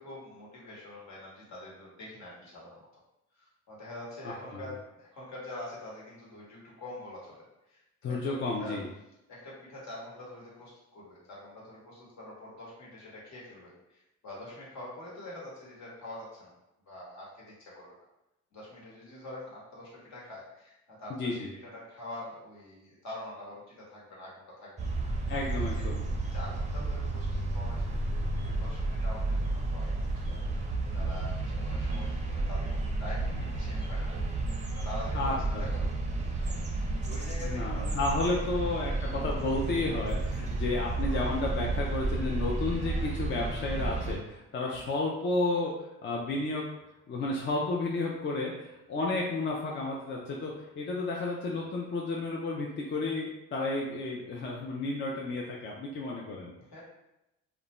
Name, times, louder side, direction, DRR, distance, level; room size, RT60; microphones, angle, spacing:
voice 1, 0.0-2.9 3.4-7.4 7.7-8.8 9.3-16.5 16.9-18.0 18.5-25.1 25.5-25.9 26.1-34.2 34.7-35.8 36.4-38.6 44.7-44.8 56.6-56.8, left 1 dB, 65° left, -5 dB, 1.1 m, -45 dB
voice 2, 4.2-4.7 8.0-8.9 21.2-21.5 25.3-26.0 35.1-35.6 37.4-46.7 47.1-56.5, left 2 dB, 40° left, -2 dB, 0.4 m, -32 dB
sound 1, 24.8-44.2, right 2 dB, 25° right, 0.5 m, -32 dB
2.4 x 2.1 x 3.0 m, 0.90 s
cardioid pair, 90°, 30 cm